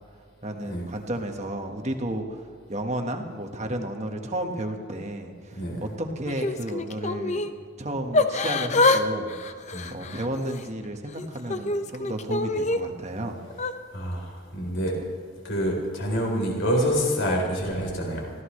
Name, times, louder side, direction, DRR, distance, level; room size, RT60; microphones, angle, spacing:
voice 1, 0.4-2.4 2.7-7.4 7.8-9.5 9.9-13.5, right 1 dB, 30° right, 4 dB, 1.4 m, -32 dB
voice 2, 5.5-5.9 9.7-10.0 13.9-15.0 15.4-18.3, equal, 60° left, -1 dB, 4.0 m, -27 dB
Yell / Crying sobbing, 6.3-7.5 8.1-9.0 9.3-10.7 11.2-12.8 13.5-13.7, left 2 dB, 30° left, 0.7 m, -25 dB
24.5 x 16.5 x 3.2 m, 2.1 s
head